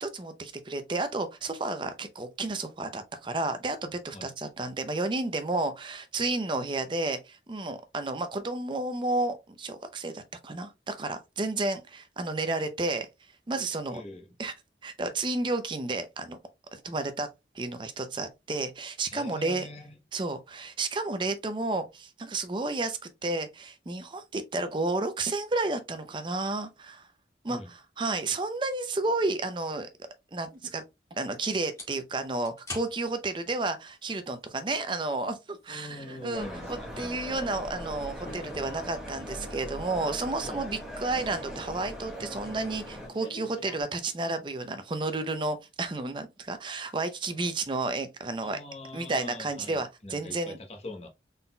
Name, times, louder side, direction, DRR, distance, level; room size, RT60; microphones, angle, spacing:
voice 1, 0.0-13.1 13.5-14.0 14.4-14.5 14.8-16.4 16.7-17.3 17.5-19.7 20.1-27.1 27.4-29.9 30.3-30.8 31.1-48.6 48.9-50.6, right 2 dB, 25° right, 0.5 m, -31 dB
voice 2, 13.9-14.3 19.1-19.9 27.5-27.7 35.7-37.4 40.4-40.6 48.4-51.1, left 1 dB, 35° left, 0.9 m, -43 dB
sound 1, 30.5-43.7, left 2 dB, 20° left, 1.8 m, -52 dB
sound 2, 35.9-43.8, left 1 dB, 80° left, 1.9 m, -49 dB
sound 3, 36.3-43.1, equal, 5° right, 1.0 m, -40 dB
4.0 x 3.8 x 2.2 m
head